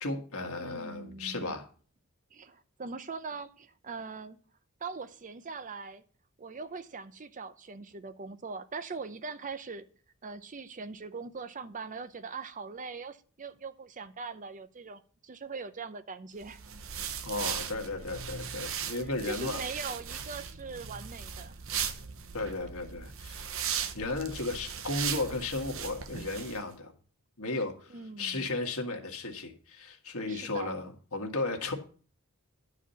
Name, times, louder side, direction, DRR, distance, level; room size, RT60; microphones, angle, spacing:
voice 1, 0.0-1.7 17.2-19.6 22.3-23.4 23.9-26.9 27.4-31.7, left 2 dB, 70° left, 1.8 m, -34 dB
voice 2, 0.6-1.6 2.3-4.4 4.8-6.0 6.4-9.9 10.2-16.6 18.9-21.6 27.9-28.5 30.3-30.8, right 4 dB, 35° right, 0.7 m, -41 dB
sound 1, 16.4-26.6, right 8 dB, 65° right, 0.9 m, -38 dB
11.0 x 4.9 x 7.0 m
head